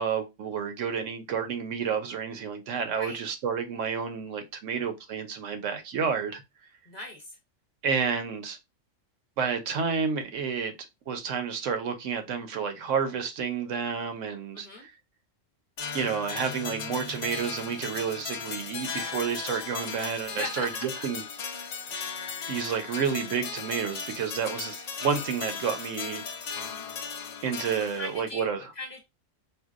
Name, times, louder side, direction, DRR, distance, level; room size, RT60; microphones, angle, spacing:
voice 1, 0.0-6.4 7.8-8.6 9.4-10.7 11.1-14.9 15.9-21.2 22.5-26.2 27.4-28.6, right 6 dB, 80° right, 1.0 m, -30 dB
voice 2, 6.9-7.4 14.5-14.9 20.3-21.1 27.8-28.5 28.7-29.0, left 1 dB, 40° left, 0.8 m, -38 dB
sound 1, 15.8-28.2, left 6 dB, 70° left, 0.4 m, -37 dB
4.5 x 2.3 x 2.4 m
omnidirectional pair, 1.3 m